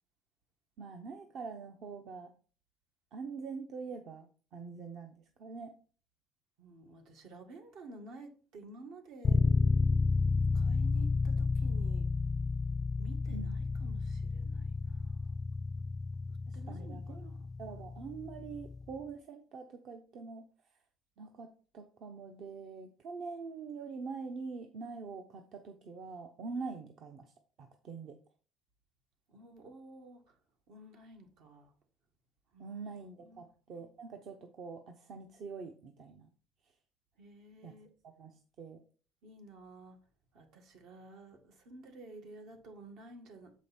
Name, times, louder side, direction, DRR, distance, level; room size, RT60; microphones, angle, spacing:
voice 1, 0.8-2.3 3.1-5.8 13.3-13.6 16.5-17.3 17.6-20.5 21.2-27.3 27.6-28.2 32.6-36.3 37.6-37.7 38.2-38.8, right 4 dB, 50° right, 0.8 m, -44 dB
voice 2, 6.6-9.4 10.5-12.1 13.0-15.4 16.5-17.5 29.3-30.4 30.7-31.7 32.5-33.5 37.2-37.9 39.2-40.0 40.3-43.6, right 2 dB, 70° right, 1.6 m, -52 dB
sound 1, 9.2-19.0, left 4 dB, 25° left, 0.3 m, -31 dB
7.3 x 5.2 x 4.2 m
cardioid pair, 140°, 0 cm